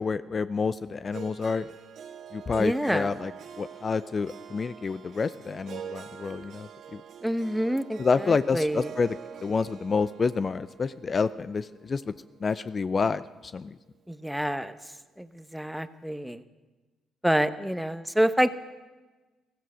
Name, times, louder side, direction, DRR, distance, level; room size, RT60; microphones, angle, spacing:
voice 1, 0.0-1.7 2.3-3.3 3.6-7.0 8.0-9.1 9.4-12.1 12.4-13.8, left 5 dB, 40° left, 15 dB, 0.4 m, -28 dB
Harp, 1.1-13.3, right 8 dB, 70° right, 1.6 m, -45 dB
voice 2, 2.6-3.1 7.2-8.9 14.1-14.8 15.2-16.4 17.2-18.6, equal, ahead, 12 dB, 1.0 m, -27 dB
15.0 x 15.0 x 6.4 m, 1.2 s
supercardioid pair, 65°, 0 cm